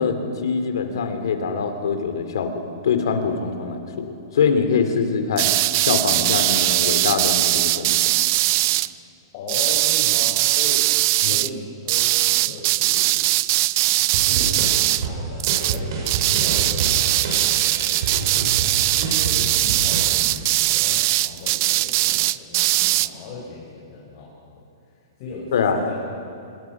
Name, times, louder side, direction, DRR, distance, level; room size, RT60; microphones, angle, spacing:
voice 1, 0.0-5.5 5.8-8.1 11.2-11.4 25.5-25.8, left 5 dB, 75° left, 7 dB, 2.9 m, -24 dB
sound 1, 5.4-8.9 9.5-11.5 11.9-15.1 15.4-15.8 16.1-23.1, right 18 dB, 40° right, 0.4 m, -20 dB
voice 2, 9.3-10.9 11.2-13.3 14.1-18.5 18.9-25.9, left 3 dB, 40° left, -4 dB, 4.9 m, -37 dB
sound 2, 13.9-20.2, right 4 dB, 60° right, 6.0 m, -28 dB
26.0 x 21.0 x 6.1 m, 2.7 s
hypercardioid pair, 160°, 2 cm